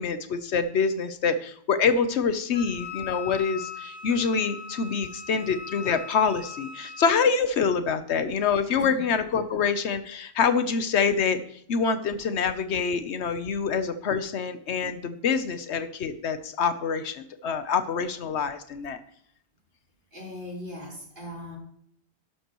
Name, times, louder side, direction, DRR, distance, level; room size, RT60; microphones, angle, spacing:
voice 1, 0.0-11.4 11.7-19.0, left 5 dB, 90° left, 10 dB, 1.1 m, -26 dB
Wind instrument woodwind instrument, 2.5-7.1, left 5 dB, 25° left, 5.0 m, -39 dB
voice 2, 20.1-21.6, left 1 dB, 50° right, -3 dB, 3.9 m, -39 dB
12.0 x 11.0 x 3.0 m, 0.66 s
omnidirectional pair, 1.1 m